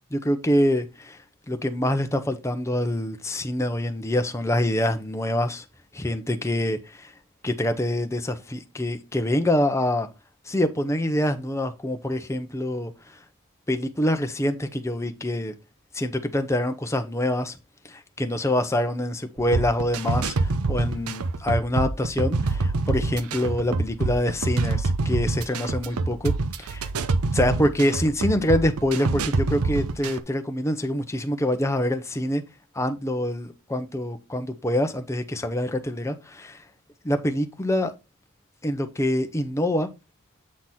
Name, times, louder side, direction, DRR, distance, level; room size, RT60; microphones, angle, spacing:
voice 1, 0.1-1.2 1.5-5.6 5.9-7.1 7.4-10.1 10.5-12.9 13.7-15.5 15.9-17.6 17.9-26.9 27.3-32.4 32.7-36.6 37.0-37.9 38.6-39.9, left 1 dB, 15° left, 0.7 m, -25 dB
sound 1, 19.4-30.2, right 3 dB, 80° right, 0.6 m, -26 dB
7.6 x 3.9 x 4.2 m
head